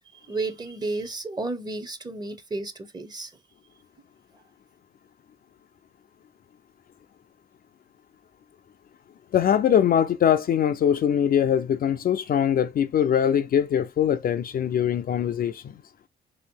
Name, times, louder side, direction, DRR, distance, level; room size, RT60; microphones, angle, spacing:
voice 1, 0.1-3.3, right 2 dB, 20° right, 0.7 m, -32 dB
voice 2, 9.3-15.8, left 9 dB, 50° left, 0.4 m, -22 dB
3.1 x 2.8 x 4.4 m
cardioid pair, 90°, 20 cm